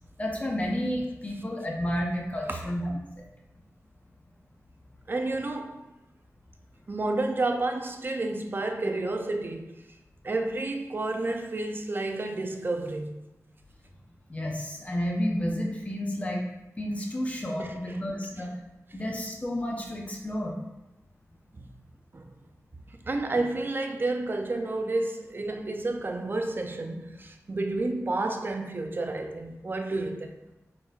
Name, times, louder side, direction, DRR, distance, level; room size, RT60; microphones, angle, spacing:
voice 1, 0.2-2.9 3.2-3.3 14.3-16.4 16.8-18.5 18.9-20.5, equal, 25° left, 0.7 m, -31 dB
voice 2, 5.1-5.8 6.9-9.8 10.2-13.2 17.6-18.0 18.4-18.5 21.5-21.7 22.1-22.3 22.9-30.3, right 2 dB, 40° right, 0.4 m, -30 dB
4.4 x 3.8 x 2.4 m
wide cardioid pair, 90°, 6 cm